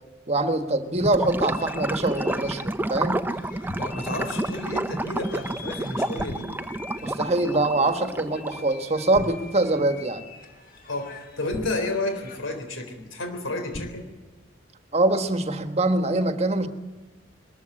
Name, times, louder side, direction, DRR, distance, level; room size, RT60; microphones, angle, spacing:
voice 1, 0.3-3.3 7.0-10.2 14.9-16.7, right 2 dB, 35° right, 8 dB, 1.4 m, -24 dB
Gurgling / Liquid, 1.0-8.7, right 1 dB, 10° right, 0.7 m, -30 dB
sound 1, 1.4-12.6, left 5 dB, 50° left, 3.7 m, -46 dB
sound 2, 3.7-4.2 6.2-6.9 9.1-9.7 11.5-12.4 13.7-14.3, left 1 dB, 25° left, 1.0 m, -39 dB
voice 2, 3.8-6.5 10.9-14.1, left 2 dB, 85° left, 6 dB, 3.8 m, -31 dB
22.0 x 14.5 x 9.9 m, 1.3 s
head